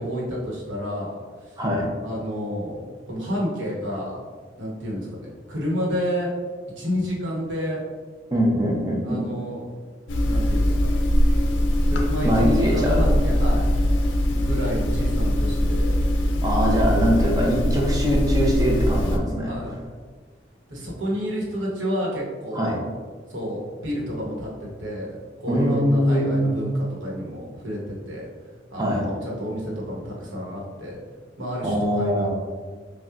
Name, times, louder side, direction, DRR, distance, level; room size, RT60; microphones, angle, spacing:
voice 1, 0.0-1.6 2.0-4.2 4.6-6.3 6.8-7.8 9.0-9.6 10.2-10.9 11.8-13.7 14.3-16.0 19.5-19.8 20.7-22.8 23.3-28.3 28.7-31.0 31.4-32.3, equal, 85° right, -3 dB, 1.1 m, -30 dB
voice 2, 1.6-1.9 8.3-9.2 12.2-13.0 16.4-19.5 22.5-22.8 25.5-26.6 28.8-29.0 31.6-32.3, equal, 20° right, -1 dB, 0.6 m, -22 dB
sound 1, 10.1-19.2, equal, 80° left, 0.4 m, -21 dB
5.5 x 2.2 x 2.4 m, 1.5 s
head